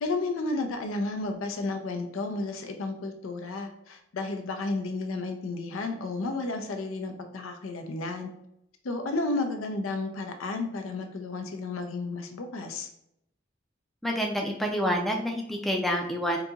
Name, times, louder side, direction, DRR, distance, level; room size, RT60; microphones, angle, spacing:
voice 1, 0.0-8.3 8.8-12.9, left 3 dB, 90° left, 5 dB, 0.5 m, -32 dB
voice 2, 14.0-16.4, equal, ahead, 1 dB, 0.3 m, -28 dB
3.9 x 2.7 x 2.3 m, 0.77 s
head